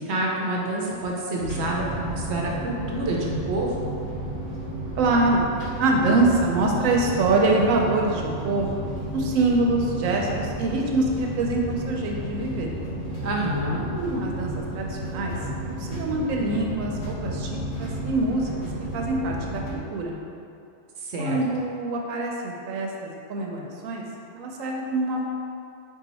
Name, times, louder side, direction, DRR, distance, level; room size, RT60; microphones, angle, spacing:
voice 1, 0.0-3.8 13.2-13.9 21.0-21.4, right 1 dB, 65° right, -2 dB, 0.8 m, -28 dB
sound 1, 1.4-19.8, right 1 dB, 60° left, 1.1 m, -32 dB
voice 2, 5.0-5.5 5.8-8.8 9.1-12.7 13.8-15.4 15.8-18.7 18.9-20.2 21.2-24.0 24.3-25.2, right 2 dB, 85° right, 0 dB, 1.0 m, -25 dB
4.2 x 2.8 x 4.1 m, 2.6 s
omnidirectional pair, 1.3 m